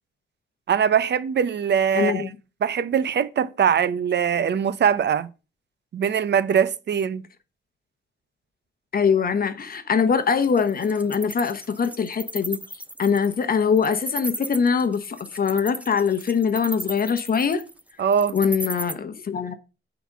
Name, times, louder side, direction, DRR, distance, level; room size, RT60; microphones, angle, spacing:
voice 1, 0.7-2.3 2.6-5.3 5.9-7.2 18.0-18.4, right 8 dB, 55° right, 0.6 m, -22 dB
voice 2, 1.9-2.3 8.9-12.6 13.0-17.6 18.3-19.5, left 6 dB, 45° left, 1.0 m, -22 dB
Wild animals, 10.3-18.9, right 1 dB, 5° right, 0.5 m, -35 dB
9.4 x 3.9 x 7.2 m
wide cardioid pair, 170°, 21 cm